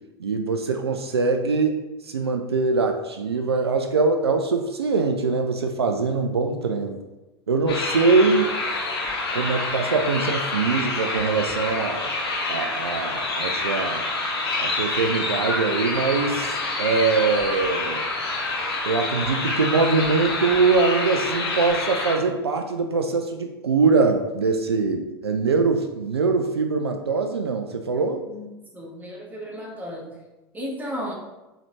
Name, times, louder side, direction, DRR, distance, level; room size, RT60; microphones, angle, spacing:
voice 1, 0.2-1.8 2.0-7.0 7.5-8.5 9.3-12.1 12.5-14.0 14.6-18.1 18.8-28.2, right 4 dB, 80° right, 5 dB, 0.4 m, -23 dB
sound 1, 7.7-22.2, left 2 dB, 75° left, 0.9 m, -27 dB
voice 2, 28.7-30.2 30.5-31.1, equal, 10° right, -1 dB, 1.1 m, -34 dB
4.8 x 3.3 x 2.8 m, 1.0 s
figure-of-eight pair, 80°, 13 cm